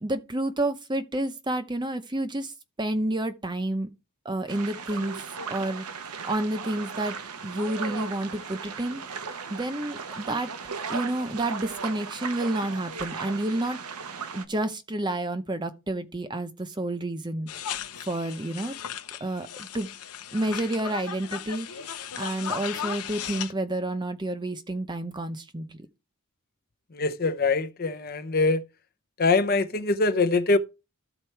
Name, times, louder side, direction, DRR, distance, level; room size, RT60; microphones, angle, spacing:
voice 1, 0.0-2.5 2.8-3.9 4.2-5.1 5.5-5.8 6.2-7.2 7.4-9.0 9.5-10.5 10.9-13.8 14.3-17.5 18.1-18.7 19.2-19.9 20.3-25.9, right 1 dB, 20° right, 0.8 m, -30 dB
sound 1, 4.5-14.4, right 5 dB, 85° right, 1.0 m, -37 dB
sound 2, 17.5-23.5, left 8 dB, 85° left, 0.9 m, -36 dB
voice 2, 26.9-28.6 29.2-30.6, left 3 dB, 40° left, 0.7 m, -23 dB
13.0 x 4.4 x 4.5 m
head